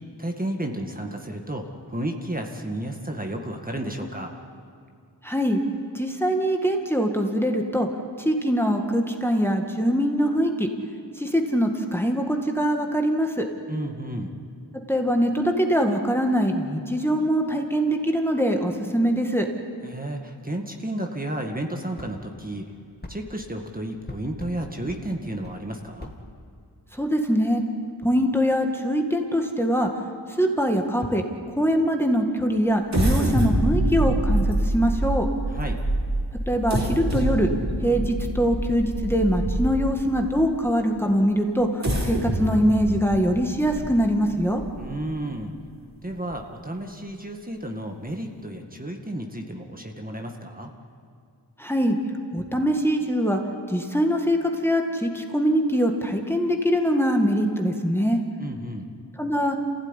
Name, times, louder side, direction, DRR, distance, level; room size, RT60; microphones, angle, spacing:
voice 1, 0.2-4.3 13.7-14.4 19.8-22.7 23.1-26.1 35.5-35.8 44.8-45.5 46.0-50.7 58.4-58.9, right 1 dB, 20° right, 2 dB, 1.9 m, -32 dB
voice 2, 5.2-5.6 5.9-7.9 8.2-10.7 11.2-13.5 14.9-19.5 26.9-27.6 28.0-29.9 30.4-31.2 31.6-35.3 36.5-37.5 37.8-44.6 51.6-52.0 52.3-53.4 53.7-58.2 59.2-59.6, equal, 5° left, 3 dB, 1.9 m, -23 dB
sound 1, 22.0-22.1 23.0-23.2 24.1-24.6 24.9-25.0 25.4-25.6 26.0-26.2, left 1 dB, 25° left, 2.3 m, -39 dB
sound 2, 32.9-40.0 40.6-40.7 41.6-45.1 45.6-45.7 46.1-46.3, right 1 dB, 40° right, 3.9 m, -26 dB
27.5 x 16.0 x 10.0 m, 2.3 s
wide cardioid pair, 85°, 41 cm